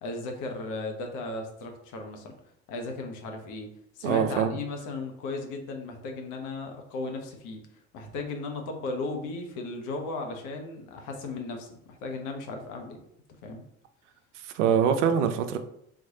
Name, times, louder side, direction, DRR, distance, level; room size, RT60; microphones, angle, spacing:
voice 1, 0.0-2.3 2.7-3.7 4.0-7.6 7.9-13.0 13.4-13.6, left 3 dB, 50° left, 3 dB, 1.0 m, -36 dB
voice 2, 4.0-4.6 14.4-15.6, right 7 dB, 65° right, 9 dB, 0.6 m, -24 dB
3.8 x 3.1 x 2.8 m, 0.75 s
figure-of-eight pair, 60°, 40 cm